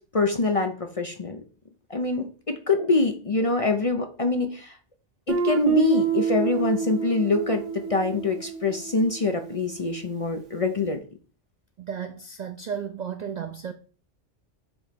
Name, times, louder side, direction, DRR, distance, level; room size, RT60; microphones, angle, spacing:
voice 1, 0.1-1.4 1.9-4.8 5.3-11.0, left 3 dB, 40° left, 0.5 m, -25 dB
Guitar, 5.3-10.0, right 6 dB, 85° right, 1.5 m, -28 dB
voice 2, 11.8-13.7, right 7 dB, 65° right, 0.4 m, -34 dB
7.1 x 3.1 x 5.1 m
omnidirectional pair, 1.2 m